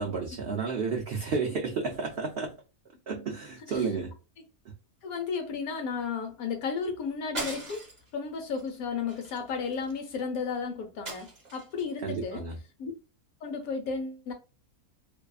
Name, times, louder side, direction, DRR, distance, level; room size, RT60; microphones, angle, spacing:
voice 1, 0.0-2.6 3.1-4.1 4.7-4.8 12.0-12.6, right 5 dB, 85° right, 0.5 m, -31 dB
voice 2, 5.0-7.8 8.1-12.4 12.8-12.9 13.4-14.3, left 5 dB, 70° left, 1.2 m, -33 dB
sound 1, 7.3-8.1 8.5-8.7 9.1-10.0 11.0-11.8, right 2 dB, 30° right, 1.0 m, -39 dB
2.7 x 2.3 x 2.3 m
omnidirectional pair, 1.6 m